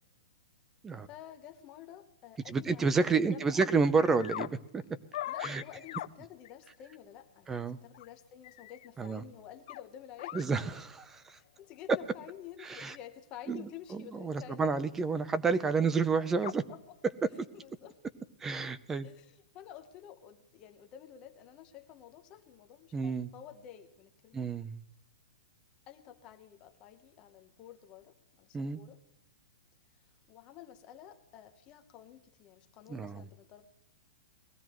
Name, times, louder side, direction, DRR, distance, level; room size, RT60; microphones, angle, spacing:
voice 1, 1.1-3.1 3.3-3.6 5.2-10.4 11.3-14.8 16.7-17.0 17.5-18.0 19.0-24.5 25.9-29.0 29.9-33.6, left 11 dB, 25° left, 7 dB, 1.0 m, -51 dB
voice 2, 2.5-4.8 5.4-5.6 7.5-7.8 9.0-9.2 10.3-11.4 12.6-13.0 13.5-16.6 18.4-19.1 22.9-23.3 24.3-24.8 28.5-28.8 32.9-33.2, right 4 dB, 10° right, 13 dB, 0.6 m, -30 dB
sound 1, 3.6-4.5 5.1-6.1 6.5-6.6 7.9-8.1 8.4-8.9 9.7-9.8 10.2-10.5 11.9-12.0 13.5-13.7 14.3-14.4 16.0-16.1 16.4-16.6, left 13 dB, 50° left, 0.5 m, -40 dB
20.5 x 15.5 x 3.1 m, 0.87 s
hypercardioid pair, 160°, 4 cm